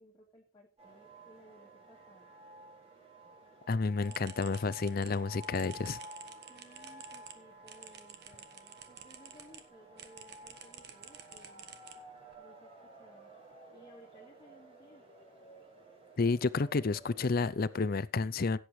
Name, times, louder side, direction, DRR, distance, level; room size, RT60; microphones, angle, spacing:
voice 1, 0.0-2.4 6.5-11.7 12.4-13.3 13.7-15.1, equal, 25° left, 1.8 m, -59 dB
sound 1, 0.8-17.9, right 1 dB, 30° right, 5.3 m, -53 dB
voice 2, 3.7-6.0 16.2-18.6, left 4 dB, 45° left, 0.5 m, -30 dB
sound 2, 4.0-9.6 10.0-12.3, right 7 dB, 55° right, 1.4 m, -52 dB
16.5 x 8.1 x 3.2 m
head